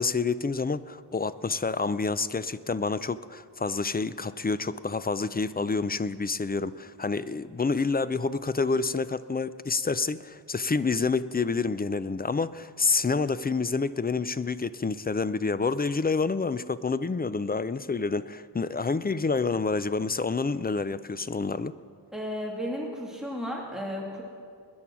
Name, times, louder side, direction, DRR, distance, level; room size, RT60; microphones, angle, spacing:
voice 1, 0.0-21.7, left 4 dB, 25° left, 0.4 m, -28 dB
voice 2, 22.1-24.2, equal, ahead, 2.6 m, -33 dB
20.5 x 10.0 x 6.1 m
wide cardioid pair, 105°, 43 cm